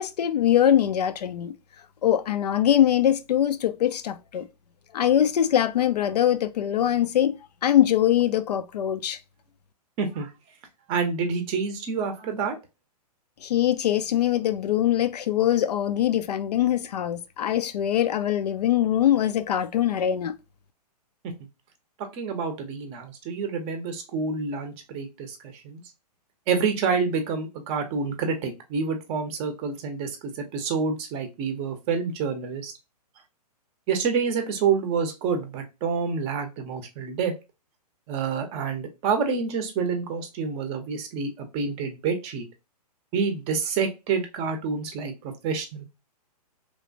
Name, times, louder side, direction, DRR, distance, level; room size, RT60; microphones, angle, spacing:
voice 1, 0.0-1.5 2.0-4.5 4.9-9.2 13.4-20.4, left 11 dB, 75° left, 0.4 m, -23 dB
voice 2, 10.0-10.3 10.9-12.6 22.1-25.4 25.6-25.8 26.5-32.7 33.9-37.3 38.1-42.4 43.1-45.8, right 5 dB, 30° right, 0.6 m, -28 dB
3.1 x 2.1 x 2.5 m
hypercardioid pair, 130°, 21 cm